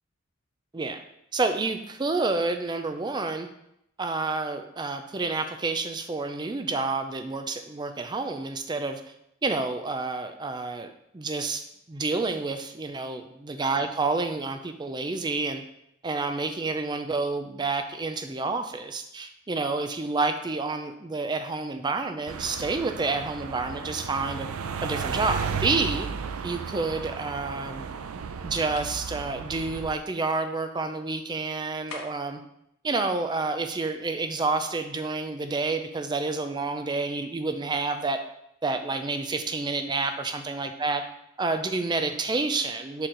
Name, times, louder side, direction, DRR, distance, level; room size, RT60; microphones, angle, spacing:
voice 1, 1.3-3.5 4.0-9.0 9.4-15.6 16.0-24.5 24.8-26.1 26.4-27.9 28.4-32.4 32.8-38.2 38.6-41.0 41.4-43.1, right 3 dB, 20° right, 8 dB, 0.4 m, -29 dB
sound 1, 22.3-30.0, right 6 dB, 80° right, 0.4 m, -34 dB
sound 2, 28.7-29.0 31.9-32.4, left 4 dB, 85° left, 1.1 m, -41 dB
6.2 x 4.2 x 3.8 m, 0.79 s
head